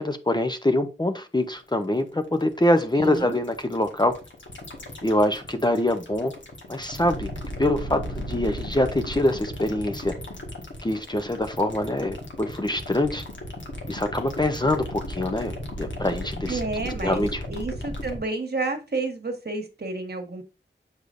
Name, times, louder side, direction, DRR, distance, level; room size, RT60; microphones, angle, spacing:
voice 1, 0.0-4.1 5.0-6.3 6.7-7.3 7.6-10.1 10.8-13.2 13.9-17.4, left 1 dB, 20° left, 0.6 m, -24 dB
sound 1, 1.5-18.2, left 1 dB, 70° left, 1.6 m, -36 dB
voice 2, 3.0-3.4 16.5-20.4, right 3 dB, 55° right, 1.4 m, -30 dB
8.1 x 4.9 x 2.5 m
wide cardioid pair, 75°, 20 cm